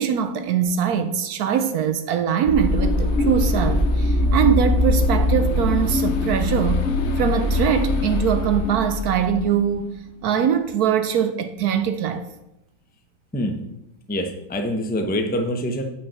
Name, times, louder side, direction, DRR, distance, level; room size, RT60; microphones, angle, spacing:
voice 1, 0.0-6.9 7.2-10.0 10.2-12.2, right 8 dB, 70° right, 1.0 m, -22 dB
sound 1, 2.5-9.9, left 2 dB, 50° left, 0.9 m, -22 dB
voice 2, 14.1-15.8, equal, 15° left, 0.3 m, -25 dB
7.9 x 5.5 x 5.7 m
omnidirectional pair, 1.8 m